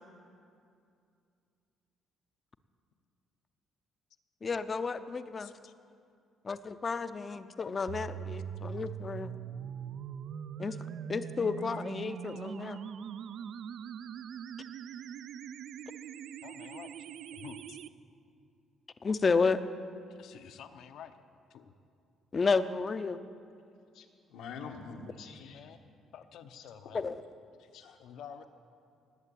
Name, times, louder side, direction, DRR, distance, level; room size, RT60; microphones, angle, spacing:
voice 1, 4.4-5.5 6.4-9.3 10.6-10.8 11.1-12.8 19.0-19.6 22.3-23.2 26.9-27.2, left 4 dB, 30° left, 12 dB, 0.6 m, -31 dB
voice 2, 5.4-5.7 16.4-17.1 17.3-17.8 20.1-21.2 21.5-21.7 24.6-24.7 25.3-25.8 26.1-27.1 28.0-28.4, left 8 dB, 70° left, 9 dB, 0.8 m, -49 dB
sound 1, 7.9-17.9, right 8 dB, 60° right, 0.4 m, -42 dB
voice 3, 23.9-25.6 26.5-26.6 27.6-28.0, left 5 dB, 85° left, 2 dB, 1.5 m, -46 dB
19.0 x 8.0 x 8.4 m, 2.5 s
cardioid pair, 135°, 0 cm